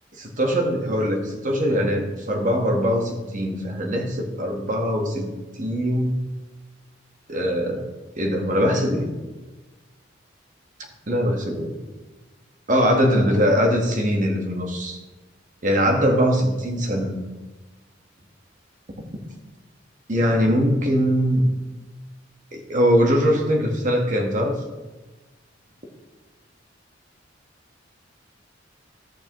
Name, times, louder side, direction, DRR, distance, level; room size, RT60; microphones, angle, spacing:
voice 1, 0.1-5.3 5.6-6.2 7.3-7.8 8.2-9.1 11.1-11.7 12.7-15.0 15.6-17.2 20.1-21.5 22.5-24.6, equal, 40° right, 2 dB, 1.3 m, -21 dB
13.0 x 6.7 x 3.0 m, 1.2 s
head